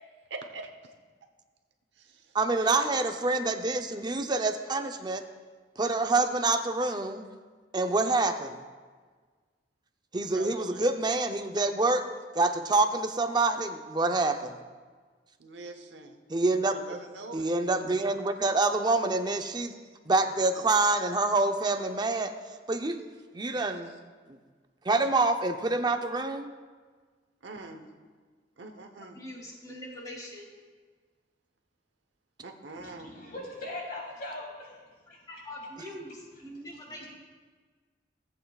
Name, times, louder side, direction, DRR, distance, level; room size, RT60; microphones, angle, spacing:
voice 1, 0.3-0.7 1.9-2.9 10.3-10.8 15.4-16.2 16.7-17.5 19.6-19.8 27.4-27.9 28.6-29.2 32.4-33.1, right 3 dB, 80° right, 4 dB, 1.0 m, -43 dB
voice 2, 2.3-5.2 5.8-7.3 7.7-8.6 10.1-12.0 12.3-14.6 16.3-17.0 17.3-19.7 20.1-22.4 22.7-23.0 23.3-23.9 24.3-24.4 24.8-26.5, right 3 dB, 25° right, 6 dB, 0.6 m, -26 dB
voice 3, 29.1-30.5 35.3-37.0, left 1 dB, 20° left, -2 dB, 2.4 m, -43 dB
voice 4, 32.7-34.8 37.0-37.1, left 2 dB, 55° left, -3 dB, 3.0 m, -40 dB
18.0 x 8.0 x 2.4 m, 1.5 s
head